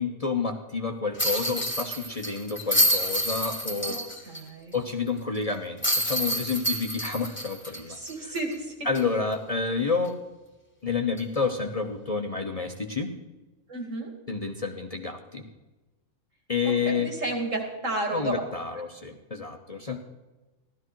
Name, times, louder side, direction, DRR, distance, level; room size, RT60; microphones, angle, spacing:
voice 1, 0.0-4.0 4.7-8.0 8.2-8.3 8.9-10.2 10.8-13.1 14.3-15.4 16.5-17.1 18.1-20.0, left 5 dB, 30° left, 4 dB, 0.9 m, -29 dB
sound 1, 1.2-4.4 4.7-4.8 5.8-8.5 8.9-9.0 11.2-11.4, equal, 10° left, 1.9 m, -28 dB
voice 2, 3.8-4.8 7.9-8.7 13.7-14.1 16.6-18.4, right 2 dB, 70° right, 2 dB, 2.9 m, -32 dB
15.5 x 12.5 x 4.6 m, 1.1 s
omnidirectional pair, 1.4 m